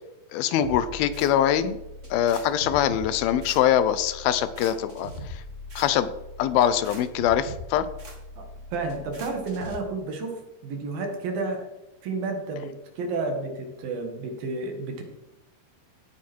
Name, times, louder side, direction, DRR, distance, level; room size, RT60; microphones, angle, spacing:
voice 1, 0.3-1.8 2.1-5.1 5.8-6.1 6.4-7.8, left 10 dB, 80° left, 13 dB, 2.5 m, -23 dB
sound 1, 0.6-9.8, left 1 dB, 25° right, 1.8 m, -41 dB
voice 2, 8.7-11.7 12.0-15.0, right 3 dB, 70° right, 4 dB, 3.7 m, -31 dB
16.5 x 8.7 x 4.5 m, 0.94 s
omnidirectional pair, 4.3 m